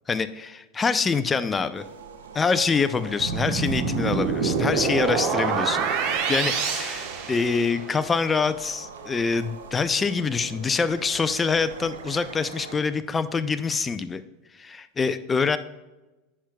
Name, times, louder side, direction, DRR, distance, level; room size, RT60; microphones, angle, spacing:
voice 1, 0.1-1.8 2.3-5.9 6.3-14.2 14.6-15.6, left 5 dB, 20° left, 12 dB, 0.4 m, -25 dB
sound 1, 1.7-12.8, right 5 dB, 80° right, 0.8 m, -42 dB
sound 2, 3.2-7.9, right 5 dB, 55° right, 1.0 m, -26 dB
10.0 x 6.0 x 2.3 m, 1.1 s
hypercardioid pair, 90°, 0 cm